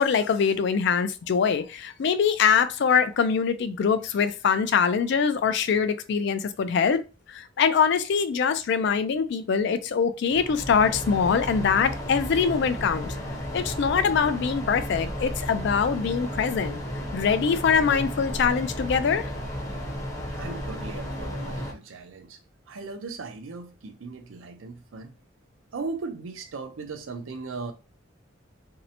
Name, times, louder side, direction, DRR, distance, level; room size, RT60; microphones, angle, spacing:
voice 1, 0.0-7.0 7.3-13.1 13.5-16.8 17.1-19.3, left 6 dB, 60° left, 0.3 m, -23 dB
sound 1, 10.3-21.7, equal, 15° left, 0.6 m, -33 dB
voice 2, 20.3-22.4 22.7-25.1 25.7-27.7, right 4 dB, 85° right, 0.5 m, -37 dB
2.6 x 2.1 x 2.7 m
head